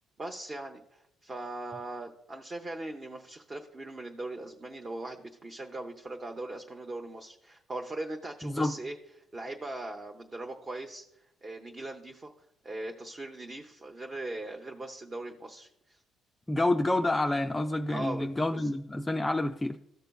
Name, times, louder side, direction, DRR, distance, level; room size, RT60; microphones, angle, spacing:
voice 1, 0.2-9.0 9.3-12.3 12.6-16.0 17.9-18.7, right 2 dB, 25° right, 3 dB, 0.7 m, -40 dB
voice 2, 8.4-8.8 16.5-19.8, left 2 dB, 10° left, 4 dB, 0.3 m, -28 dB
14.5 x 6.6 x 2.3 m, 0.79 s
cardioid pair, 130°, 0 cm